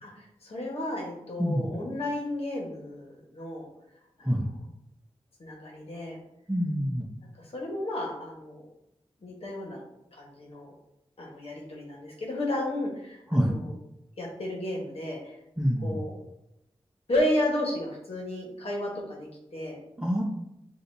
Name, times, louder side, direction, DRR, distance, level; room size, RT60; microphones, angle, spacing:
voice 1, 0.0-3.7 4.2-4.3 5.4-6.2 7.4-8.6 9.2-9.8 10.1-10.7 11.2-13.7 14.2-15.3 15.8-16.1 17.1-19.8, left 1 dB, 65° left, -2 dB, 1.3 m, -33 dB
voice 2, 6.5-7.1 13.3-13.5 15.6-16.0 20.0-20.2, equal, 10° right, -6 dB, 0.9 m, -26 dB
6.4 x 2.7 x 2.7 m, 0.85 s
wide cardioid pair, 80°, 11 cm